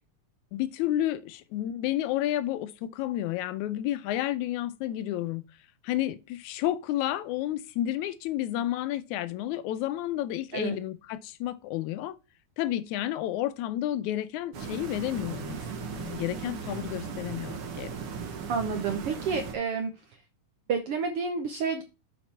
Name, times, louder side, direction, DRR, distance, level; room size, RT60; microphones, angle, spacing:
voice 1, 0.5-5.4 5.8-12.2 12.6-17.9, left 13 dB, 80° left, 1.9 m, -31 dB
sound 1, 14.5-19.5, right 6 dB, 55° right, 1.6 m, -37 dB
voice 2, 18.5-19.9 20.7-21.8, right 5 dB, 75° right, 1.3 m, -29 dB
7.2 x 5.0 x 4.4 m
omnidirectional pair, 3.8 m